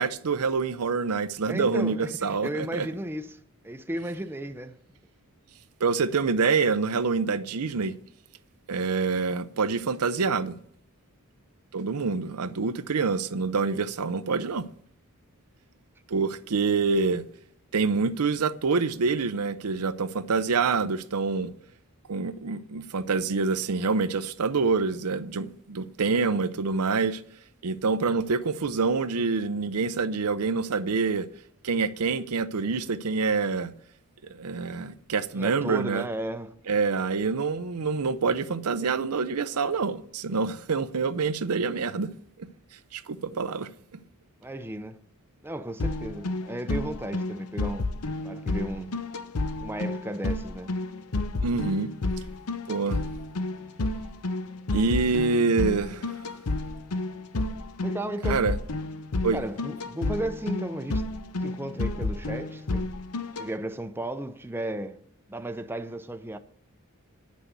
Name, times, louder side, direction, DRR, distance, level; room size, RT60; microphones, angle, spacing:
voice 1, 0.0-2.9 5.8-8.0 8.7-10.6 11.7-14.7 16.1-17.2 17.7-21.5 22.1-27.2 27.6-31.3 31.6-33.7 34.3-36.1 36.7-42.1 42.4-42.5 42.9-43.7 51.4-51.9 52.7-53.0 54.7-56.1 58.2-58.6 59.2-59.4, right 4 dB, 90° right, 0.6 m, -26 dB
voice 2, 1.5-4.8 35.3-36.6 44.4-45.1 45.4-48.0 48.2-49.0 49.6-50.8 57.8-58.4 59.3-61.0 61.4-62.9 63.4-65.0 65.3-66.4, right 1 dB, 10° right, 0.5 m, -34 dB
sound 1, 45.8-63.5, left 2 dB, 90° left, 0.8 m, -31 dB
9.3 x 6.2 x 8.2 m
head